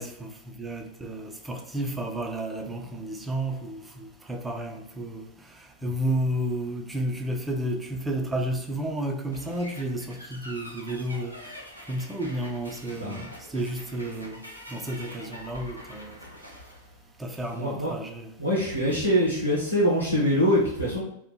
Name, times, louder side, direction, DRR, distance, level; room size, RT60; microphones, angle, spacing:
voice 1, 0.0-11.6 11.9-14.4 14.7-16.2 17.2-18.3, right 1 dB, 10° right, 0.4 m, -32 dB
sound 1, 9.3-17.7, equal, 90° left, 0.5 m, -45 dB
voice 2, 12.9-13.2 17.5-17.9 18.4-21.0, equal, 90° right, 0.5 m, -24 dB
2.7 x 2.1 x 2.2 m
figure-of-eight pair, 90°, 0 cm